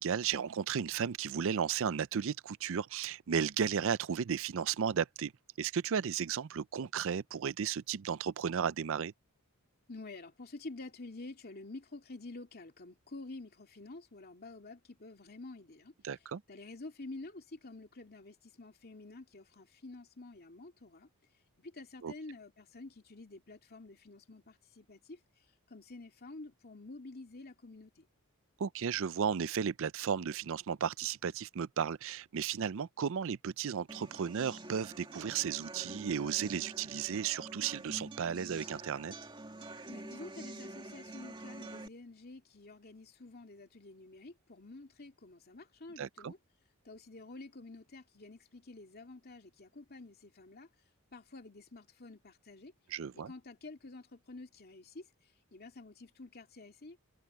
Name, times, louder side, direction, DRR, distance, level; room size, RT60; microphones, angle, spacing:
voice 1, 0.0-5.3 5.6-9.1 16.0-16.4 22.0-22.1 28.6-39.1 46.0-46.3 52.9-53.3, right 7 dB, 60° right, 0.5 m, -34 dB
voice 2, 9.9-15.9 16.5-21.1 21.6-25.2 25.7-28.1 39.9-46.4 46.8-50.7 51.1-52.7 53.1-55.1 55.5-57.0, left 2 dB, 45° left, 2.6 m, -49 dB
sound 1, 33.9-41.9, right 2 dB, 20° right, 2.3 m, -47 dB
head